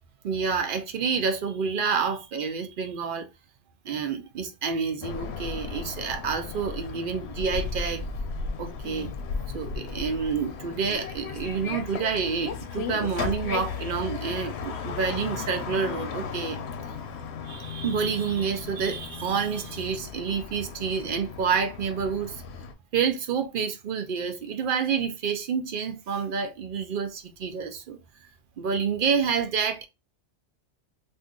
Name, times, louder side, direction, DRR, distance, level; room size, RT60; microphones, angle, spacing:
voice 1, 0.2-3.3 3.8-8.1 8.6-9.1 9.5-16.6 17.5-22.4 22.9-28.0 28.6-29.9, right 6 dB, 55° right, 0.7 m, -28 dB
sound 1, 5.0-22.7, left 5 dB, 70° left, 0.8 m, -35 dB
2.6 x 2.4 x 3.5 m
omnidirectional pair, 1.2 m